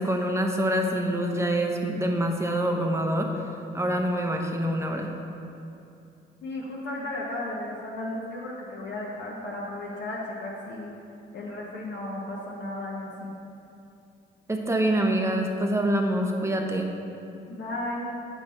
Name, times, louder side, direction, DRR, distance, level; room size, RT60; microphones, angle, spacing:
voice 1, 0.0-3.5 3.7-5.1 14.5-16.9, right 1 dB, 15° right, 2 dB, 0.8 m, -26 dB
voice 2, 6.4-11.0 11.3-13.3 17.5-18.1, left 1 dB, 60° left, -4 dB, 1.1 m, -34 dB
7.9 x 5.6 x 4.3 m, 2.7 s
cardioid pair, 90°, 20 cm